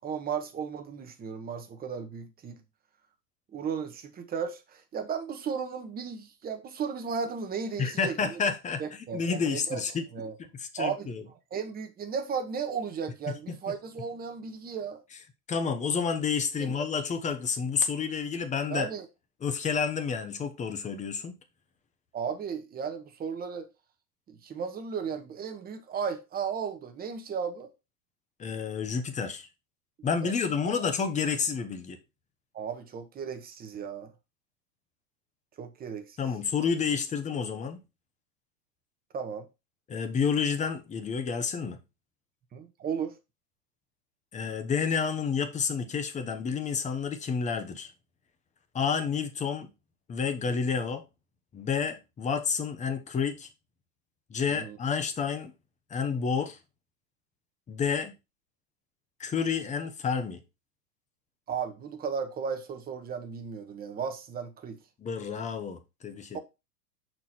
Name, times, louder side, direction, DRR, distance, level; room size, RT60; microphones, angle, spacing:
voice 1, 0.0-2.6 3.5-8.4 8.8-9.8 10.1-10.3 10.8-11.1 11.5-15.0 16.6-16.9 18.7-19.0 22.1-23.7 24.3-27.7 30.2-30.3 30.6-30.7 32.5-34.1 35.6-36.2 39.1-39.5 42.5-43.1 54.5-54.8 61.5-64.8 66.3-66.4, right 6 dB, 20° right, 1.1 m, -35 dB
voice 2, 7.8-10.0 10.4-11.2 13.3-13.6 15.5-18.9 19.4-21.4 28.4-29.5 30.0-32.0 36.2-37.8 39.9-41.8 44.3-47.9 48.7-49.7 50.1-51.0 51.5-53.5 54.3-55.5 55.9-56.6 57.7-58.1 59.2-60.4 65.0-66.4, left 6 dB, 15° left, 0.9 m, -30 dB
6.0 x 4.5 x 4.2 m
hypercardioid pair, 125°, 48 cm